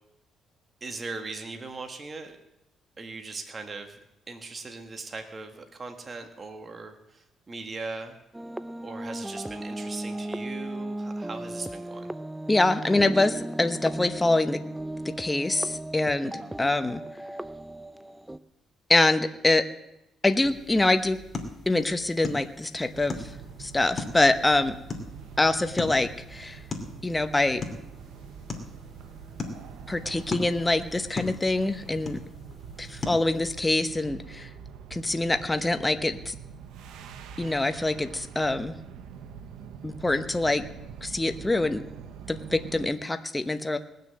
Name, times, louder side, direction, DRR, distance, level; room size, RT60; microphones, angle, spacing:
voice 1, 0.8-2.4 3.0-4.0 4.3-8.2 8.8-12.1 16.4-16.5, right 3 dB, 35° right, 5 dB, 1.6 m, -39 dB
sound 1, 8.3-18.4, right 1 dB, 10° right, 0.6 m, -36 dB
voice 2, 12.5-14.6 15.0-17.0 18.9-19.6 20.2-21.2 21.7-23.2 23.6-24.7 25.4-26.6 27.0-27.6 29.9-32.2 32.8-34.5 34.9-36.3 37.4-38.8 39.8-40.6 41.0-41.8 42.3-43.8, left 2 dB, 15° left, 9 dB, 0.9 m, -25 dB
sound 2, 20.4-33.8, left 3 dB, 30° left, 2.6 m, -40 dB
sound 3, 22.9-42.9, right 7 dB, 85° right, 1.0 m, -44 dB
20.0 x 6.7 x 7.8 m, 0.87 s
cardioid pair, 90°, 0 cm